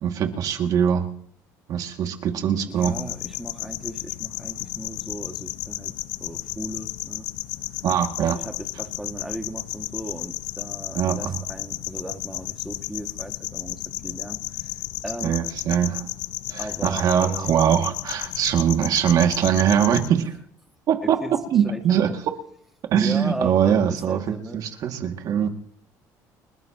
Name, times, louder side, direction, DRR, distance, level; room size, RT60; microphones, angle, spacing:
voice 1, 0.0-1.1 1.7-2.9 7.8-8.4 10.9-11.4 15.2-16.1 16.5-20.3 20.9-21.2 21.5-22.1 22.9-25.5, right 9 dB, 60° right, 4 dB, 2.2 m, -22 dB
voice 2, 2.7-5.9 6.2-7.3 8.2-14.7 15.0-15.4 16.6-17.5 21.0-22.1 23.0-24.6, right 1 dB, 5° right, 3 dB, 2.1 m, -37 dB
sound 1, 2.8-20.1, left 17 dB, 85° left, 0.6 m, -33 dB
30.0 x 12.5 x 3.0 m, 0.65 s
cardioid pair, 105°, 7 cm